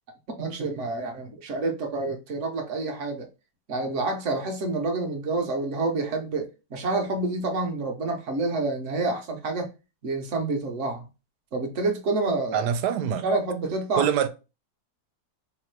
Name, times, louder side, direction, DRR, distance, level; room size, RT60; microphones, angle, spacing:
voice 1, 0.4-3.3 3.7-9.7 10.0-11.1 11.5-12.7 13.2-14.1, right 3 dB, 55° right, 1.0 m, -28 dB
voice 2, 12.5-13.2 14.0-14.3, right 9 dB, 75° right, 1.1 m, -24 dB
3.2 x 2.6 x 4.4 m
omnidirectional pair, 1.8 m